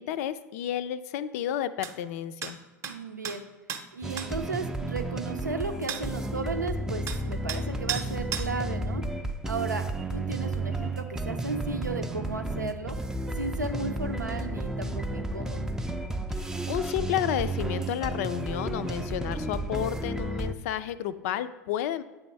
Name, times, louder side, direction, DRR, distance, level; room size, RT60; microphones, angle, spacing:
voice 1, 0.0-2.6 16.4-22.0, left 11 dB, 60° left, 13 dB, 0.4 m, -31 dB
sound 1, 1.8-1.9 2.4-2.5 2.8-3.0 3.2-3.4 3.7-3.8 4.2-4.3 5.9-6.0 7.1-7.2 7.5-7.6 7.9-8.1 8.3-8.5, right 7 dB, 30° right, 0.7 m, -33 dB
voice 2, 2.9-3.4 3.9-9.0 9.5-9.9 10.1-13.0 13.3-15.7, right 3 dB, 90° right, 6 dB, 0.6 m, -34 dB
sound 2, 4.0-20.5, right 2 dB, 5° right, 0.4 m, -32 dB
8.3 x 3.5 x 5.3 m, 1.2 s
figure-of-eight pair, 80°, 9 cm